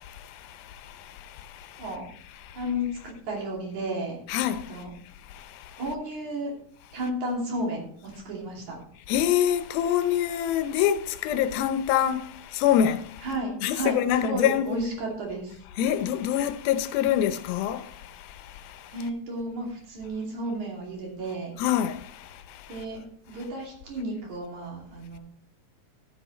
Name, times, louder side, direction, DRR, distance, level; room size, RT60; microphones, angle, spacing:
voice 1, 0.0-1.8 2.4-2.6 4.3-4.8 5.3-5.8 9.1-13.3 13.6-14.8 15.8-19.0 21.6-22.8, left 10 dB, 90° left, 2.6 m, -26 dB
voice 2, 2.5-4.2 4.7-4.9 5.8-6.5 6.9-8.9 13.2-15.6 18.9-21.5 22.7-25.2, right 1 dB, 55° right, 4.0 m, -32 dB
12.0 x 9.4 x 3.2 m
omnidirectional pair, 4.1 m